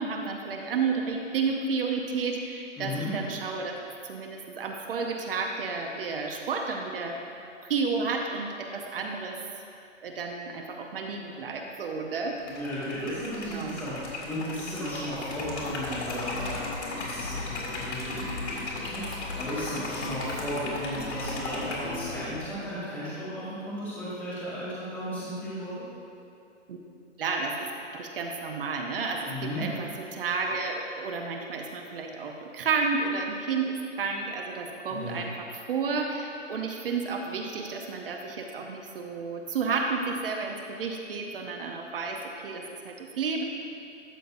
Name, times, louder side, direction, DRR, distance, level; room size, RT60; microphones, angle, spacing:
voice 1, 0.0-3.8 4.1-7.2 7.6-9.4 10.0-12.4 13.5-13.8 26.7-26.8 27.2-27.7 27.9-43.4, right 4 dB, 50° right, 2 dB, 0.7 m, -31 dB
voice 2, 2.8-3.1 12.5-25.8 29.3-29.6 34.9-35.2, equal, 5° left, -13 dB, 0.8 m, -35 dB
Liquid, 12.4-21.9, left 2 dB, 65° left, 2.0 m, -37 dB
sound 1, 15.3-22.5, left 3 dB, 90° left, 1.0 m, -39 dB
12.0 x 6.7 x 2.6 m, 2.5 s
hypercardioid pair, 165°, 37 cm